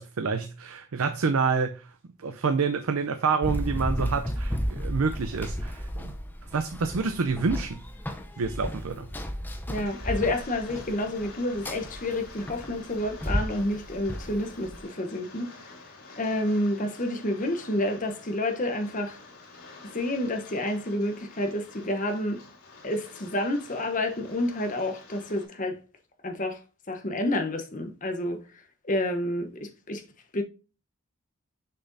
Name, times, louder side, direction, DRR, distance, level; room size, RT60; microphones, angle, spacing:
voice 1, 0.0-6.2 6.5-7.8 8.4-9.1, right 5 dB, 75° right, 0.5 m, -28 dB
Run, 3.4-14.8, equal, 10° left, 0.6 m, -33 dB
Rain, 9.7-25.5, left 3 dB, 80° left, 2.8 m, -48 dB
voice 2, 9.7-15.5 16.2-19.2 19.9-22.4 22.8-25.8 26.2-26.6 26.9-28.4 28.8-30.0 30.3-30.4, left 1 dB, 35° left, 0.9 m, -29 dB
6.6 x 6.0 x 2.6 m
head